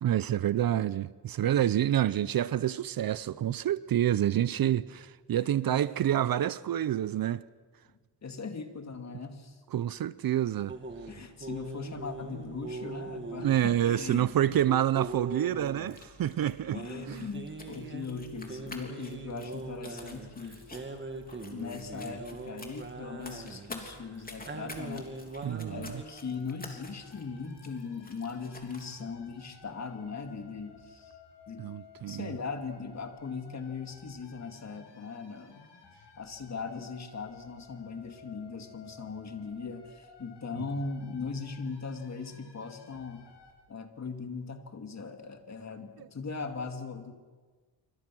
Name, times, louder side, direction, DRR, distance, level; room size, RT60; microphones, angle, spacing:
voice 1, 0.0-7.4 9.7-10.8 13.4-16.8 17.1-17.2 25.4-25.9 31.6-32.4 46.0-46.1, right 11 dB, 55° right, 0.6 m, -28 dB
voice 2, 5.3-5.9 8.2-9.6 11.1-14.6 16.7-20.6 21.5-25.2 25.7-31.2 31.5-31.7 32.1-35.6 36.2-43.3 43.7-47.1, left 4 dB, 40° left, 2.4 m, -39 dB
sound 1, 10.7-26.0, right 3 dB, 25° right, 2.2 m, -42 dB
sound 2, 15.8-28.9, left 2 dB, 20° left, 3.4 m, -50 dB
sound 3, 25.9-43.5, left 5 dB, 85° left, 7.7 m, -56 dB
27.0 x 25.0 x 6.2 m
wide cardioid pair, 130°, 41 cm